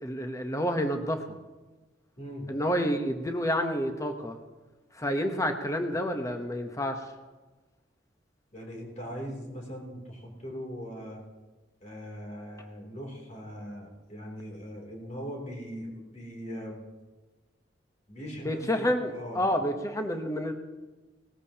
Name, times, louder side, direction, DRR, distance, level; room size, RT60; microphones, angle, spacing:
voice 1, 0.0-1.4 2.5-4.4 4.9-7.1 18.4-20.5, equal, 15° left, 5 dB, 0.9 m, -29 dB
voice 2, 2.2-2.5 8.5-11.2 11.8-16.8 18.1-19.4, equal, 35° left, -1 dB, 3.0 m, -40 dB
18.5 x 14.0 x 2.8 m, 1.2 s
head